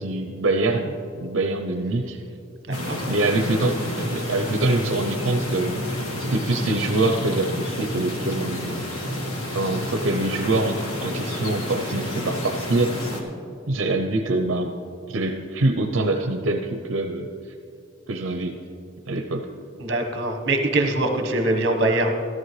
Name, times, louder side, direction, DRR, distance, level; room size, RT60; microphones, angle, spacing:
voice 1, 0.0-2.2 2.7-2.8 3.0-5.8 6.2-8.8 9.5-13.0 13.7-14.7 15.1-17.3 18.1-18.6 19.1-19.5, right 2 dB, 70° right, 4 dB, 0.6 m, -24 dB
sound 1, 2.7-13.2, left 1 dB, 90° left, 1.6 m, -30 dB
voice 2, 2.7-3.0 19.8-22.1, right 2 dB, 50° right, 4 dB, 1.1 m, -23 dB
14.0 x 13.5 x 3.2 m, 2.5 s
head